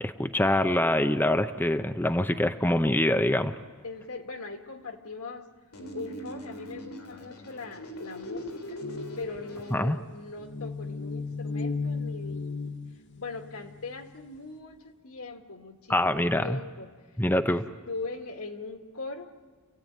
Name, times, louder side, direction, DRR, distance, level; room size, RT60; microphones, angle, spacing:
voice 1, 0.0-3.5 9.7-10.0 15.9-16.6 17.2-17.6, left 1 dB, 10° left, 8 dB, 0.6 m, -25 dB
voice 2, 3.8-5.5 5.9-8.8 9.2-12.8 13.2-16.9 17.5-19.3, left 3 dB, 75° left, 4 dB, 2.0 m, -40 dB
sound 1, 5.7-9.7, equal, 90° left, 3.6 m, -40 dB
sound 2, 8.8-14.0, left 4 dB, 55° left, 0.8 m, -35 dB
28.5 x 16.5 x 9.0 m, 1.4 s
head